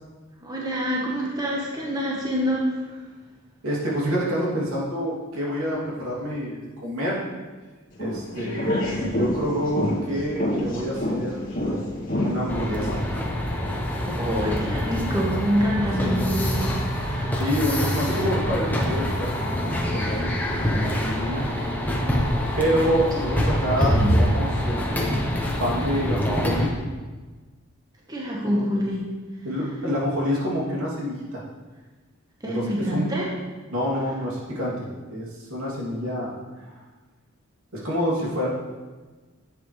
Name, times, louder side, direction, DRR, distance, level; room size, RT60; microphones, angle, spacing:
voice 1, 0.4-2.7 14.1-16.7 17.0-17.4 22.4-22.6 23.8-24.1 28.1-29.0 32.4-33.3, equal, 20° right, -4 dB, 1.3 m, -26 dB
voice 2, 3.6-7.2 8.0-8.7 9.0-11.4 12.2-13.0 16.0-16.5 17.4-21.5 22.6-25.1 25.6-26.7 28.4-28.8 29.4-31.4 32.4-33.1 33.7-36.4 37.7-38.5, equal, 75° right, -5 dB, 2.8 m, -27 dB
sound 1, 7.9-13.2, left 1 dB, 40° left, 2.1 m, -28 dB
sound 2, 12.5-26.7, equal, 10° left, 1.0 m, -25 dB
10.5 x 7.9 x 3.3 m, 1.3 s
head